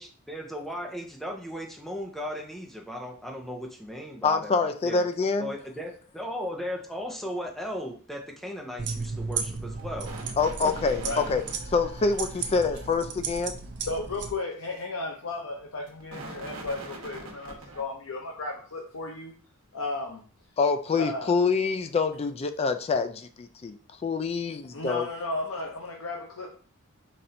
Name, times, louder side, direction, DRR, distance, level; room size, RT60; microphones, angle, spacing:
voice 1, 0.0-5.1 5.4-10.1 10.6-10.7, equal, ahead, 0 dB, 0.7 m, -36 dB
voice 2, 4.2-5.5 10.4-11.4 11.7-13.6 20.6-25.1, left 4 dB, 30° left, 9 dB, 0.3 m, -26 dB
sound 1, 8.8-14.3, right 4 dB, 55° right, 0.6 m, -35 dB
sound 2, 9.7-12.9 15.7-17.8, right 2 dB, 75° right, 1.1 m, -43 dB
voice 3, 13.9-19.3 19.7-20.2 21.0-21.3 24.7-26.5, left 2 dB, 90° left, 0 dB, 0.7 m, -34 dB
4.1 x 2.6 x 4.3 m, 0.43 s
head